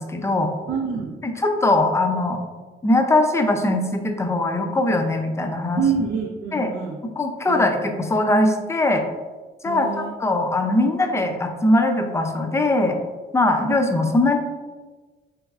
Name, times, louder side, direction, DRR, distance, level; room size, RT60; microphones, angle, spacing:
voice 1, 0.0-0.5 1.2-2.4 2.8-5.8 6.5-6.7 7.2-9.0 9.6-12.9 13.3-14.4, left 2 dB, 15° left, 4 dB, 0.4 m, -21 dB
voice 2, 0.7-1.2 5.8-7.0 7.5-7.6 9.7-10.2, right 6 dB, 65° right, 0 dB, 0.5 m, -26 dB
3.4 x 3.0 x 2.3 m, 1.3 s
cardioid pair, 90°, 20 cm